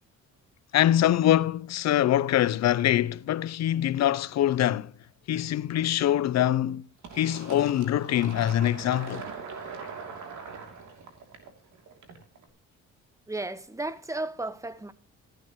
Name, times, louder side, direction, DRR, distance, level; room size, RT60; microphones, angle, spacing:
voice 1, 0.7-4.9 5.3-6.9 7.1-9.3, left 12 dB, 60° left, 0.6 m, -24 dB
Fill (with liquid), 7.0-12.4, right 5 dB, 70° right, 3.0 m, -42 dB
voice 2, 13.3-14.9, right 2 dB, 10° right, 1.1 m, -34 dB
14.5 x 11.5 x 3.1 m
cardioid pair, 90°, 30 cm